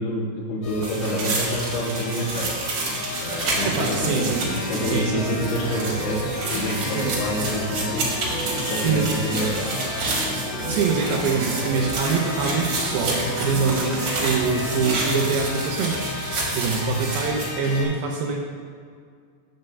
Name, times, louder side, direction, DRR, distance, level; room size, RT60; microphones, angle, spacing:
voice 1, 0.0-2.5 3.2-4.3 4.7-8.2 8.7-9.7, equal, 75° left, -3 dB, 3.0 m, -27 dB
sound 1, 0.6-17.8, left 3 dB, 55° left, 2.4 m, -34 dB
sound 2, 0.8-17.5, right 2 dB, 60° right, 1.5 m, -30 dB
sound 3, 3.4-15.0, right 1 dB, 40° right, 1.1 m, -33 dB
voice 2, 3.7-4.5 4.8-5.4 6.9-7.1 8.8-9.1 10.3-10.4 10.7-18.4, right 5 dB, 80° right, 0 dB, 2.3 m, -25 dB
7.9 x 3.8 x 6.7 m, 2.1 s
omnidirectional pair, 4.9 m